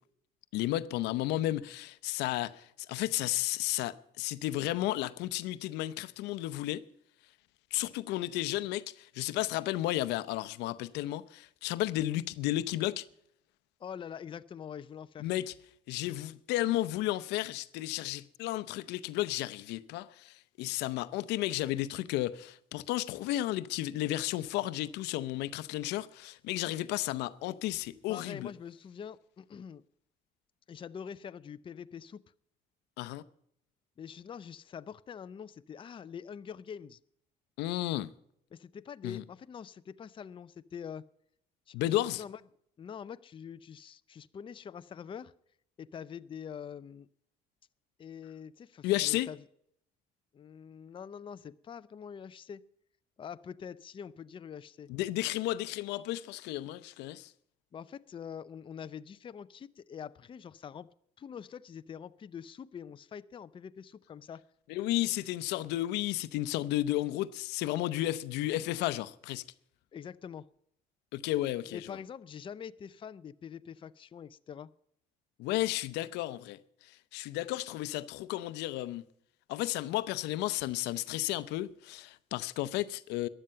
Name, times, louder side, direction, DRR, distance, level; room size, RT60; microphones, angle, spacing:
voice 1, 0.5-6.8 7.7-13.0 15.2-15.5 15.9-28.5 33.0-33.2 37.6-38.1 39.0-39.2 41.7-42.2 48.8-49.3 54.9-57.3 64.7-69.4 71.1-72.0 75.4-79.0 79.5-83.3, left 15 dB, 90° left, 0.7 m, -33 dB
voice 2, 13.8-15.3 28.1-29.8 30.7-32.2 34.0-37.0 38.5-41.1 41.7-42.4 42.8-45.3 45.8-47.1 48.0-49.4 50.3-52.6 53.2-54.9 57.7-64.4 69.9-70.5 71.7-74.7, left 7 dB, 30° left, 0.5 m, -45 dB
15.5 x 11.0 x 5.7 m
cardioid pair, 110°, 17 cm